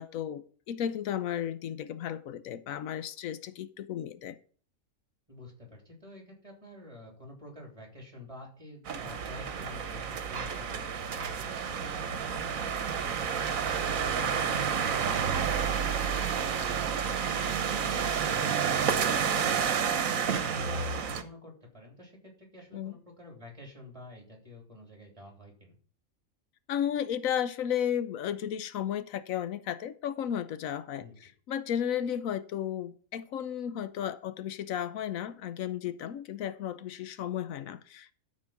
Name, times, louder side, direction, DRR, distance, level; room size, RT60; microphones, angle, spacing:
voice 1, 0.0-4.4 22.7-23.0 26.7-31.0 31.5-38.1, left 9 dB, 85° left, 1.1 m, -34 dB
voice 2, 5.3-13.6 14.0-19.4 20.1-25.8 30.9-31.2, left 2 dB, 25° right, 3.6 m, -49 dB
sound 1, 8.9-21.2, right 7 dB, 80° right, 1.3 m, -30 dB
12.5 x 4.6 x 5.9 m
omnidirectional pair, 1.4 m